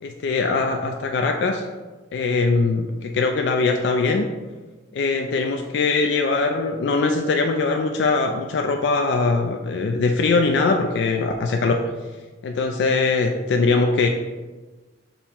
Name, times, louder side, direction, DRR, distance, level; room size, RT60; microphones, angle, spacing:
voice 1, 0.0-1.6 2.1-4.3 4.9-11.8 12.4-14.1, left 3 dB, 70° left, 4 dB, 0.3 m, -21 dB
5.4 x 2.1 x 4.3 m, 1.3 s
head